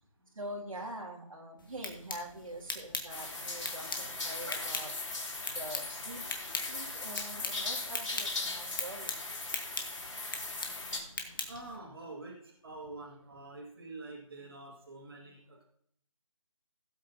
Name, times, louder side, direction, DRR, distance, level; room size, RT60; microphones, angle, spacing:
voice 1, 0.3-5.0 5.5-6.2 6.6-9.3, right 1 dB, 70° right, 0 dB, 2.6 m, -44 dB
sound 1, 1.6-11.8, left 3 dB, 35° left, 1.5 m, -42 dB
sound 2, 3.1-11.0, left 2 dB, 60° left, 3.4 m, -38 dB
voice 2, 11.5-12.4 12.6-15.6, right 2 dB, 40° right, -2 dB, 2.1 m, -46 dB
16.0 x 8.1 x 2.8 m, 0.65 s
figure-of-eight pair, 175°, 18 cm